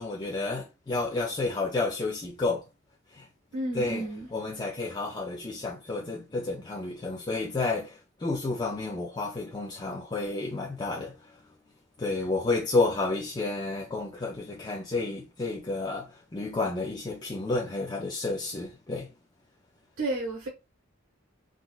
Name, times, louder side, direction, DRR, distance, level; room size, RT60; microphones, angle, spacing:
voice 1, 0.0-2.6 3.1-3.3 3.7-4.1 4.3-11.3 12.0-19.1, left 3 dB, 20° left, 0.4 m, -31 dB
voice 2, 3.5-4.3 20.0-20.5, right 2 dB, 90° right, 1.1 m, -31 dB
3.7 x 2.3 x 2.3 m
head